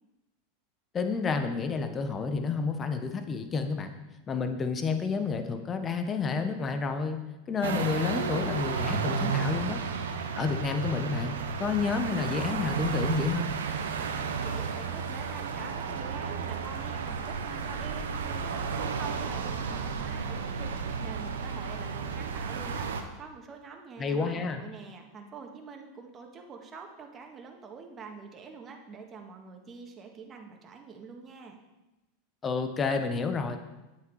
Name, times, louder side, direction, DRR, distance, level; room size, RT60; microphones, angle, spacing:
voice 1, 0.9-3.9 4.3-7.2 7.5-9.8 10.3-13.5 24.0-24.6 32.4-33.6, left 5 dB, 25° left, 7 dB, 1.3 m, -30 dB
sound 1, 7.6-23.0, right 5 dB, 85° right, 1.1 m, -32 dB
voice 2, 14.4-31.6, right 5 dB, 30° right, 3 dB, 1.9 m, -45 dB
10.0 x 8.3 x 4.9 m, 1.0 s
hypercardioid pair, 105°, 0 cm